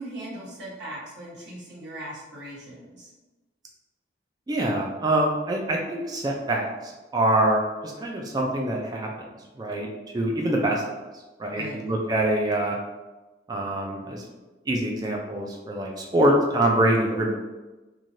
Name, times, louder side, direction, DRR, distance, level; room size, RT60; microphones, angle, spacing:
voice 1, 0.0-3.1 11.5-11.8, right 1 dB, 70° right, -8 dB, 1.2 m, -39 dB
voice 2, 4.5-9.1 9.6-9.9 10.1-10.8 11.4-12.8 13.5-14.2 14.7-17.3, right 1 dB, 20° right, 0 dB, 0.3 m, -24 dB
3.0 x 2.3 x 2.6 m, 1.1 s
head